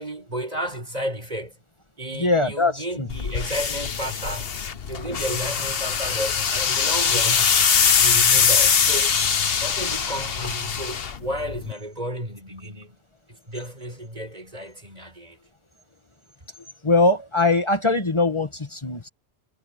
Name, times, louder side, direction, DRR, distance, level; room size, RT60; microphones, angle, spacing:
voice 1, 0.0-1.5 2.0-4.5 4.9-7.5 7.8-9.1 9.6-13.0 13.3-15.4, equal, 35° right, 7.4 m, -32 dB
voice 2, 2.1-3.1 16.8-19.1, left 3 dB, 25° left, 1.8 m, -21 dB
sound 1, 3.1-11.7, left 6 dB, 60° left, 1.2 m, -22 dB
omnidirectional pair, 1.1 m